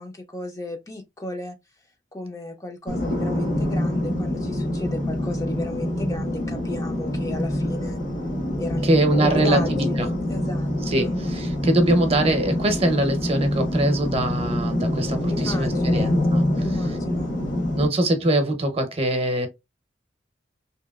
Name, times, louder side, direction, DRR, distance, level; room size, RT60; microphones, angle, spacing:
voice 1, 0.0-1.6 2.1-8.0 8.6-8.9 9.3-11.1 15.3-16.1 16.6-17.3, left 2 dB, 20° left, 0.4 m, -34 dB
sound 1, 2.9-17.9, left 1 dB, 70° left, 1.1 m, -25 dB
voice 2, 8.8-10.1 10.9-16.4 17.7-19.5, right 1 dB, 35° right, 0.8 m, -22 dB
2.9 x 2.8 x 2.3 m
head